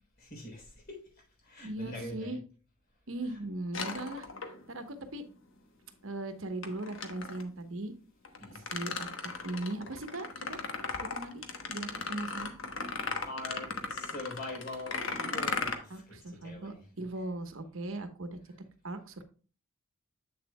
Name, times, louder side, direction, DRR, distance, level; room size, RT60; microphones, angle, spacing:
voice 1, 0.2-1.0 1.4-2.4 3.2-3.4 8.4-8.6 13.2-17.2, left 1 dB, 45° left, 3.8 m, -43 dB
voice 2, 1.6-2.4 3.1-4.3 4.7-5.2 6.0-7.9 8.5-10.6 10.9-11.4 11.7-12.6 15.9-18.4 18.8-19.2, right 2 dB, 70° right, 1.1 m, -39 dB
sound 1, 3.7-4.8 6.6-7.5 8.2-15.7, left 4 dB, 60° left, 1.1 m, -37 dB
8.4 x 7.0 x 2.2 m
head